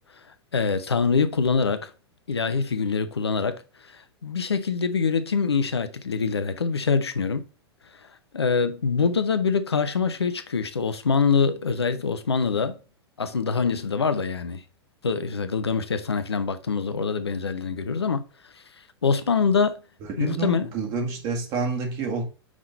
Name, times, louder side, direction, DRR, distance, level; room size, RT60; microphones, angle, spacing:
voice 1, 0.5-1.9 2.3-3.6 3.9-7.4 8.3-12.8 13.2-14.6 15.0-18.2 19.0-19.8 20.2-20.7, left 5 dB, 75° left, 0.7 m, -24 dB
voice 2, 20.2-22.2, right 4 dB, 35° right, 1.9 m, -28 dB
6.1 x 3.8 x 4.0 m
figure-of-eight pair, 95°, 14 cm